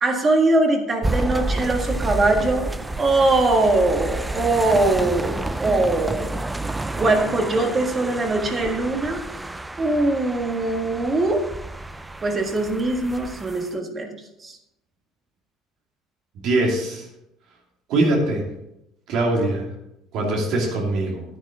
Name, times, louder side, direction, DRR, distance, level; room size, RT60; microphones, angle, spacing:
voice 1, 0.0-2.7 3.0-6.3 7.0-9.2 9.8-11.4 12.2-14.1 14.4-14.6, right 2 dB, 25° right, 3 dB, 1.6 m, -21 dB
sound 1, 1.0-13.7, right 1 dB, 10° right, 0.4 m, -30 dB
voice 2, 16.4-17.0 17.9-18.4 19.1-19.6 20.1-21.2, right 2 dB, 60° right, -1 dB, 2.6 m, -22 dB
10.5 x 9.9 x 3.8 m, 0.85 s
cardioid pair, 145°, 0 cm